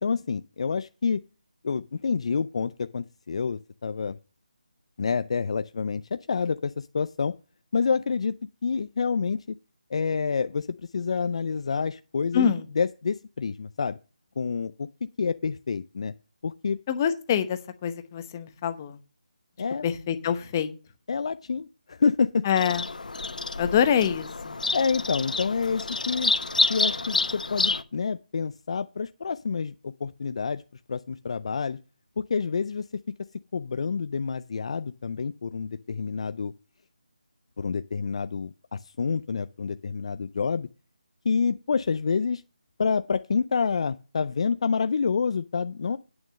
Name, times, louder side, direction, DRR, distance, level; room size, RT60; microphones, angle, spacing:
voice 1, 0.0-1.2 1.6-4.2 5.0-7.3 7.7-8.3 8.6-9.4 9.9-12.5 12.8-14.0 14.4-14.9 15.2-16.1 16.4-16.8 19.6-19.9 21.1-22.4 24.7-26.3 26.7-30.6 30.9-31.8 32.2-32.9 33.5-36.5 37.6-40.7 41.2-42.4 42.8-46.0, left 5 dB, 45° left, 12 dB, 0.4 m, -28 dB
voice 2, 12.3-12.7 16.9-19.0 19.8-20.7 22.4-22.8 23.6-24.6, left 8 dB, 20° left, 10 dB, 0.9 m, -25 dB
Bird vocalization bird call bird song, 22.6-27.8, left 3 dB, 75° left, 0.9 m, -28 dB
9.1 x 6.2 x 6.3 m, 0.34 s
figure-of-eight pair, 165°, 4 cm